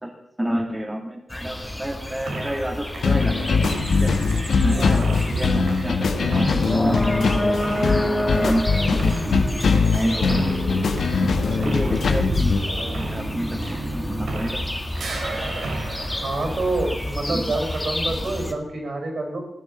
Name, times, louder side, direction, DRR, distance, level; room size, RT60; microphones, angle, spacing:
voice 1, 0.4-3.5 4.0-4.1 4.6-8.6 8.9-9.4 9.9-10.8 11.4-12.5 13.0-13.6 13.9-14.7 17.3-17.5, equal, 20° right, 0 dB, 2.3 m, -29 dB
sound 1, 1.3-18.5, left 1 dB, 15° left, 1.8 m, -29 dB
sound 2, 2.3-2.7 2.9-14.7 15.0-17.2, right 2 dB, 85° right, 2.8 m, -33 dB
sound 3, 3.0-12.6, left 4 dB, 80° left, 1.3 m, -21 dB
voice 2, 16.2-19.4, right 2 dB, 65° right, 2 dB, 5.6 m, -27 dB
15.5 x 9.2 x 6.9 m, 0.82 s
cardioid pair, 55°, 0 cm